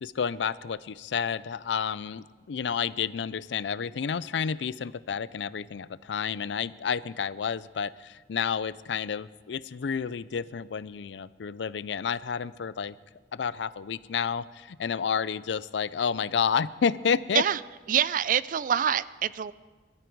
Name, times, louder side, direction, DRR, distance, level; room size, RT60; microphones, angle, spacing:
voice 1, 0.0-12.9 13.3-17.4, left 6 dB, 85° left, 18 dB, 0.4 m, -30 dB
voice 2, 17.9-19.5, right 9 dB, 50° right, 18 dB, 0.4 m, -25 dB
22.0 x 13.0 x 4.6 m, 1.4 s
head